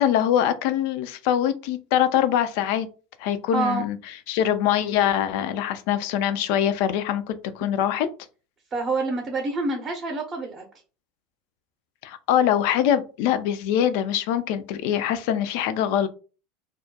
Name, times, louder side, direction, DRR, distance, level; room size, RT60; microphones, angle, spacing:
voice 1, 0.0-2.9 3.2-4.0 4.3-8.1 12.0-16.1, left 10 dB, 60° left, 0.3 m, -23 dB
voice 2, 3.5-3.8 8.7-10.6, right 3 dB, 30° right, 0.6 m, -27 dB
2.3 x 2.1 x 2.7 m
hypercardioid pair, 80°, 0 cm